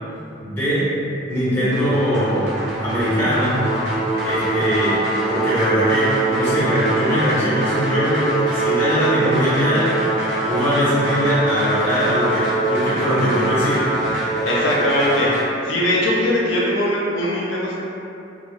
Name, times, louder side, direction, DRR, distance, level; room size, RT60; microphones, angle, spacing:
voice 1, 0.4-1.0 1.3-2.5 2.8-3.7 4.2-10.0 10.4-14.1, equal, 10° left, -11 dB, 0.8 m, -21 dB
sound 1, 1.7-15.4, right 2 dB, 70° right, 0.5 m, -23 dB
voice 2, 14.5-15.3 15.6-17.8, left 1 dB, 85° left, -6 dB, 0.5 m, -20 dB
2.0 x 2.0 x 3.0 m, 2.7 s
head